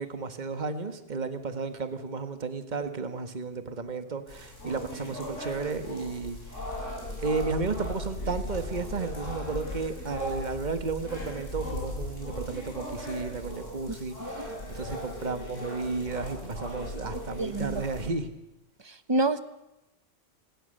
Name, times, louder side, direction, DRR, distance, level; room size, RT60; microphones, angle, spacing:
voice 1, 0.0-6.7 7.2-18.3, right 4 dB, 40° right, 9 dB, 1.7 m, -33 dB
sound 1, 4.3-18.1, left 1 dB, 85° left, 7.7 m, -38 dB
voice 2, 14.2-14.5 17.4-17.8 18.8-19.4, right 2 dB, 20° right, 12 dB, 1.1 m, -28 dB
28.0 x 20.5 x 6.7 m, 0.92 s
omnidirectional pair, 1.3 m